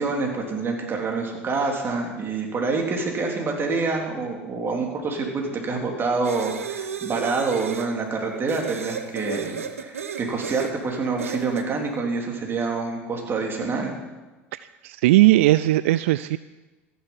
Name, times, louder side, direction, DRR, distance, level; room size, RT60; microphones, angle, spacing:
voice 1, 0.0-14.0, right 4 dB, 30° right, 0 dB, 3.6 m, -27 dB
sound 1, 6.2-7.9 8.5-10.7 11.2-11.7, right 7 dB, 90° right, 1.0 m, -33 dB
voice 2, 14.5-16.4, right 17 dB, 70° right, 15 dB, 0.3 m, -18 dB
14.5 x 11.0 x 5.7 m, 1.2 s
hypercardioid pair, 80°, 7 cm